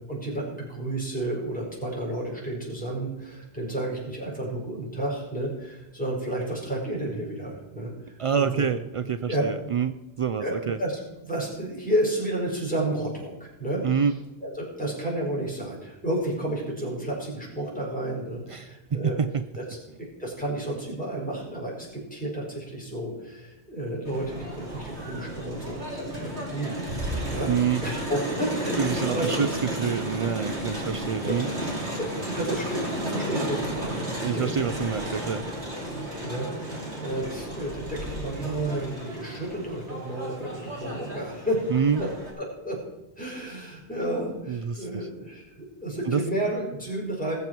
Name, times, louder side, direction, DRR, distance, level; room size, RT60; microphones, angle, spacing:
voice 1, 0.1-8.7 9.3-9.4 10.4-13.8 14.4-19.2 19.6-19.7 20.0-27.5 27.8-29.5 31.2-31.4 32.0-34.5 36.2-41.7 42.0-42.1 42.4-42.8 43.2-47.4, right 1 dB, 5° left, -4 dB, 4.7 m, -31 dB
voice 2, 8.2-10.8 13.8-14.1 18.5-19.4 27.5-27.8 28.8-31.5 34.2-35.5 41.7-42.1 44.5-45.1 46.1-46.2, right 7 dB, 60° right, 11 dB, 0.3 m, -27 dB
Crowd, 24.0-42.3, equal, 80° right, 3.0 m, -33 dB
19.5 x 7.9 x 4.6 m, 1.0 s
omnidirectional pair, 1.1 m